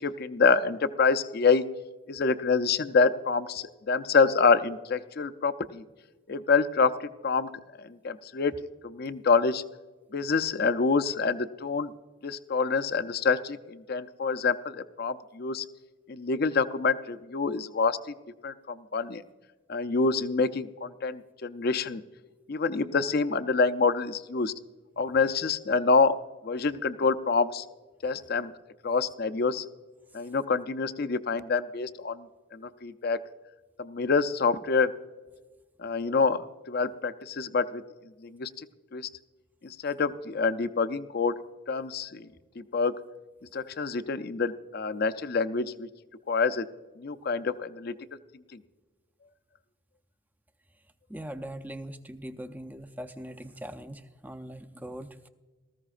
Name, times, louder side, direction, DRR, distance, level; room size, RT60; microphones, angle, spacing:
voice 1, 0.0-1.6 2.1-5.8 6.3-7.5 7.8-8.5 8.8-9.6 10.1-11.9 12.2-15.7 16.1-18.1 18.4-19.2 19.7-22.0 22.5-24.5 25.0-26.1 26.4-27.6 28.0-28.5 28.8-29.7 30.1-32.3 32.5-33.2 33.8-34.9 35.8-37.8 38.2-38.7 38.9-39.1 39.6-41.3 41.7-42.3 42.6-42.9 43.5-45.9 46.3-46.7 47.0-47.9 48.5-48.6, left 4 dB, 45° left, 11 dB, 0.5 m, -26 dB
voice 2, 51.1-55.3, right 1 dB, 10° right, 10 dB, 0.5 m, -41 dB
18.5 x 14.5 x 2.5 m, 1.3 s
head